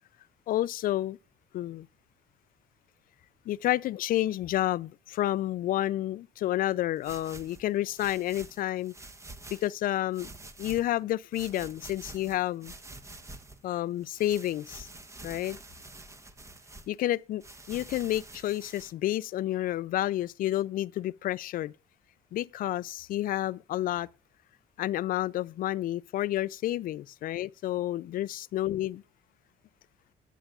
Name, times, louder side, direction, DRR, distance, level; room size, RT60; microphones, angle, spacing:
voice 1, 0.5-1.2 1.5-1.9 3.5-8.9 9.5-10.3 10.6-12.7 13.6-14.9 15.2-15.6 16.9-17.4 17.7-21.7 22.3-24.1 24.8-29.0, left 14 dB, 55° left, 0.4 m, -30 dB
sound 1, 7.0-9.7 10.1-11.0 11.3-13.6 14.0-16.9 17.4-18.9, right 2 dB, 15° right, 1.0 m, -47 dB
13.5 x 10.0 x 2.4 m
cardioid pair, 110°, 17 cm